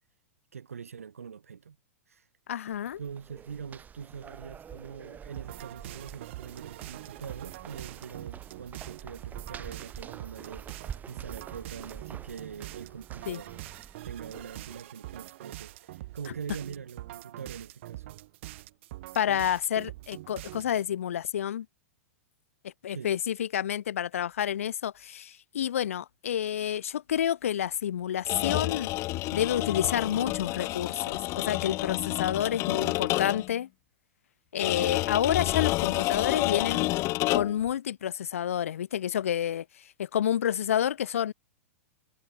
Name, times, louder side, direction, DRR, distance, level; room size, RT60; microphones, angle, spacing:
voice 1, 0.5-1.8 2.1-2.2 3.0-13.6 14.0-18.2 22.9-23.1, right 7 dB, 80° right, 2.5 m, -43 dB
voice 2, 2.5-3.0 13.3-13.4 19.1-21.7 22.6-28.9 29.3-33.7 34.5-36.9 37.3-39.6 40.0-41.3, left 10 dB, 70° left, 0.7 m, -29 dB
sound 1, 2.7-14.8, right 8 dB, 20° right, 2.9 m, -47 dB
sound 2, 5.4-20.9, right 17 dB, 55° right, 0.5 m, -44 dB
sound 3, 28.3-33.6 34.6-37.7, left 19 dB, 40° left, 0.6 m, -29 dB
hypercardioid pair, 105°, 8 cm